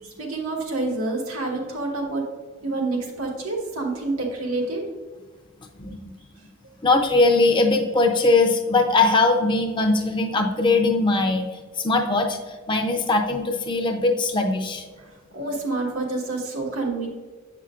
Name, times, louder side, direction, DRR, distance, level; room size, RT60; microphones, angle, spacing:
voice 1, 0.0-2.2 2.6-4.8 15.0-17.1, right 2 dB, 85° right, -1 dB, 1.4 m, -28 dB
voice 2, 5.8-6.1 6.8-14.9, left 3 dB, 20° left, 3 dB, 0.5 m, -21 dB
7.8 x 5.7 x 2.4 m, 1.4 s
head